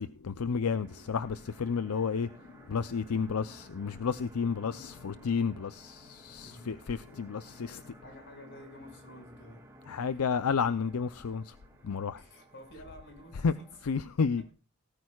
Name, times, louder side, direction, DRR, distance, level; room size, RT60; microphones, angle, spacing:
voice 1, 0.0-2.3 2.7-7.9 9.9-11.5 11.8-12.2 13.4-13.5 13.8-14.4, left 5 dB, 80° left, 0.5 m, -31 dB
sound 1, 0.7-14.0, right 1 dB, 15° right, 2.3 m, -55 dB
voice 2, 6.4-6.7 8.0-9.6 10.0-10.1 12.1-13.7 14.4-14.5, equal, 50° left, 5.6 m, -51 dB
18.5 x 14.0 x 2.3 m
head